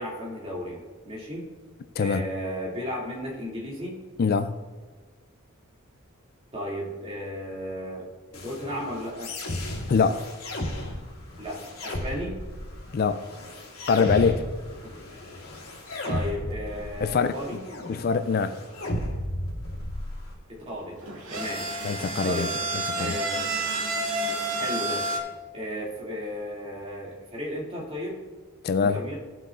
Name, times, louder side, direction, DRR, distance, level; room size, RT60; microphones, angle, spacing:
voice 1, 0.0-1.5 2.0-4.0 6.5-8.1 8.4-9.3 11.4-12.4 14.8-14.9 16.0-17.6 20.5-21.0 21.3-21.6 22.2-22.5 22.9-23.5 24.5-25.0 25.5-28.1 28.8-29.2, equal, 30° right, 2.6 m, -34 dB
voice 2, 2.0-2.3 4.2-4.6 9.9-10.3 12.9-13.3 13.9-14.5 17.0-17.3 17.9-18.6 21.8-22.5 22.7-23.2 28.6-29.0, left 5 dB, 45° left, 0.4 m, -24 dB
sound 1, 8.3-20.3, left 1 dB, 80° left, 2.6 m, -35 dB
sound 2, 20.9-25.2, right 2 dB, 65° right, 2.3 m, -29 dB
16.5 x 7.8 x 2.5 m
head